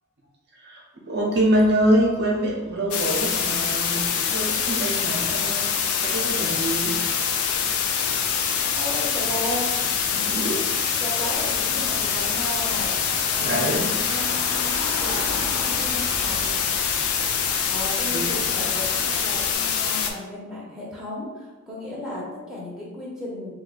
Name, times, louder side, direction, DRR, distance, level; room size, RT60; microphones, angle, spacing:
voice 1, 0.5-7.1 8.0-8.4 10.3-11.0 13.4-13.9 14.7-15.0 18.1-18.3 19.2-19.3, right 1 dB, 50° right, -3 dB, 0.7 m, -25 dB
sound 1, 2.9-20.1, left 7 dB, 85° left, 0.4 m, -25 dB
voice 2, 8.8-12.9 13.3-16.6 17.7-23.5, left 1 dB, ahead, -8 dB, 0.8 m, -35 dB
Car / Engine, 11.3-19.5, left 1 dB, 50° left, 0.9 m, -38 dB
2.6 x 2.2 x 4.0 m, 1.1 s
head